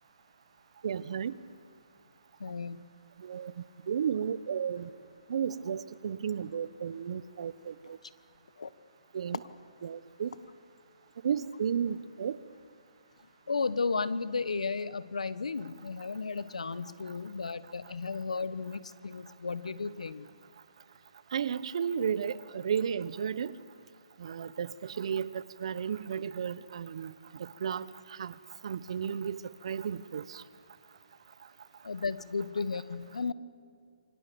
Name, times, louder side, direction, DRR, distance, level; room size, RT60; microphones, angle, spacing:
voice 1, 0.8-1.3 3.2-3.5 3.9-4.9 5.3-7.7 9.1-9.4 9.8-10.3 11.2-12.3 21.3-23.5 24.2-27.1 27.4-27.9 28.2-28.3 28.6-29.4 29.6-30.2, right 7 dB, 60° right, 1.1 m, -33 dB
voice 2, 2.4-2.8 8.6-8.7 13.5-20.3 31.8-33.3, left 4 dB, 85° left, 1.2 m, -34 dB
28.5 x 25.0 x 7.0 m
hypercardioid pair, 145°, 3 cm